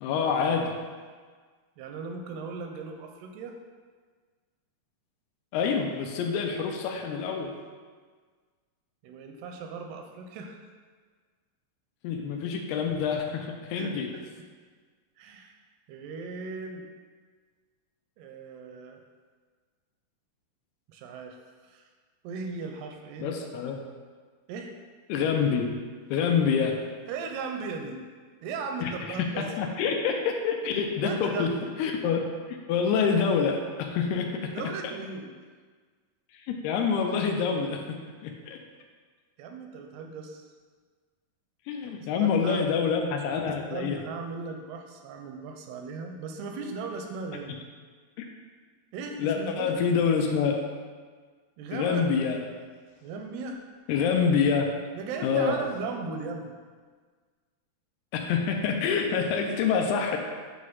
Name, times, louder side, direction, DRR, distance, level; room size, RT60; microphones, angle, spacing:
voice 1, 0.0-0.7 5.5-7.5 12.0-14.1 23.2-23.8 25.1-25.7 26.1-26.8 28.8-28.9 29.2-31.5 31.8-34.7 36.5-38.0 38.2-38.6 41.7-44.0 49.2-50.6 51.7-52.4 53.9-54.7 55.2-55.6 58.1-60.2, left 6 dB, 85° left, 2 dB, 2.7 m, -26 dB
voice 2, 1.8-3.6 9.0-10.6 13.8-14.3 15.2-15.6 15.9-16.8 18.2-19.0 20.9-21.4 21.6-21.9 22.2-23.5 24.5-24.7 27.1-28.0 28.4-29.5 31.0-31.7 34.5-35.3 39.4-40.4 41.9-42.6 43.4-47.6 48.9-49.9 51.6-52.0 53.0-53.6 54.9-56.5, right 4 dB, 85° right, 3 dB, 2.7 m, -37 dB
9.0 x 3.3 x 5.5 m, 1.5 s
omnidirectional pair, 4.7 m